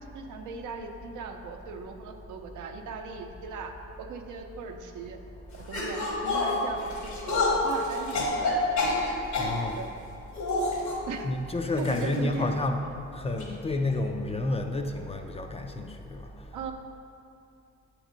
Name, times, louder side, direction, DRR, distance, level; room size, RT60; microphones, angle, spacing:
voice 1, 0.0-3.7 4.0-5.2 5.7-8.9 9.8-9.9 11.1-11.3 11.8-12.6 16.5-16.7, right 4 dB, 80° right, 4 dB, 0.6 m, -38 dB
sound 1, 5.7-9.6 10.3-11.0 11.8-12.0 12.3-12.4 13.4-13.5, left 2 dB, 70° left, 1.3 m, -28 dB
voice 2, 9.4-9.8 11.2-16.2, left 2 dB, 20° left, 5 dB, 0.4 m, -30 dB
7.1 x 3.0 x 5.1 m, 2.6 s
cardioid pair, 90°, 30 cm